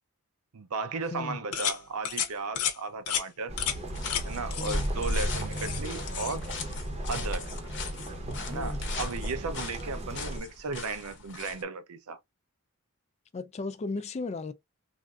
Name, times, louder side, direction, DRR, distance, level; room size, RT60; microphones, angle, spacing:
voice 1, 0.5-3.6 4.2-6.5 7.1-7.5 8.5-12.2, right 4 dB, 75° right, 0.6 m, -35 dB
voice 2, 1.1-1.4 4.6-4.9 8.5-8.8 13.3-14.5, left 3 dB, 30° left, 0.3 m, -35 dB
sound 1, 1.5-1.8 2.1-2.3 2.6-2.8 3.1-3.2 3.6-3.8 4.1-4.2 4.5-4.8 5.0-5.8 6.1-6.4, left 9 dB, 85° left, 0.8 m, -31 dB
sound 2, 3.5-10.4, right 1 dB, 30° right, 0.7 m, -34 dB
sound 3, 3.9-11.6, left 5 dB, 55° left, 0.8 m, -41 dB
3.3 x 2.6 x 2.3 m
head